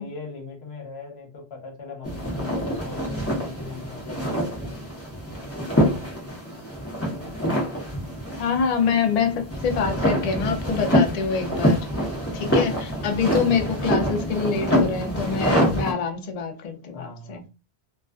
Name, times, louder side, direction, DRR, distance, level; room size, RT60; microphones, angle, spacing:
voice 1, 0.0-4.8 12.3-12.5 13.2-13.7 16.9-17.4, left 4 dB, 75° left, 1.1 m, -40 dB
sound 1, 2.0-15.9, equal, 15° left, 0.7 m, -26 dB
voice 2, 8.4-11.8 12.3-17.4, left 6 dB, 55° left, 0.4 m, -25 dB
2.3 x 2.3 x 2.3 m
omnidirectional pair, 1.1 m